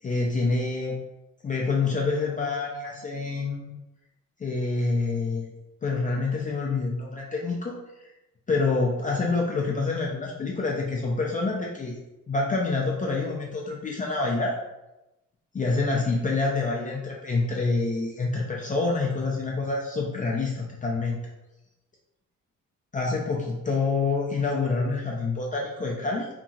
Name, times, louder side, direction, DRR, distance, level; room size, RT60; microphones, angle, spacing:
voice 1, 0.0-1.0 1.4-3.7 4.4-5.5 5.8-8.1 8.5-12.0 12.3-14.6 15.5-21.2 22.9-26.3, left 3 dB, 25° left, -2 dB, 0.4 m, -27 dB
2.9 x 2.3 x 2.7 m, 0.97 s
cardioid pair, 90°, 30 cm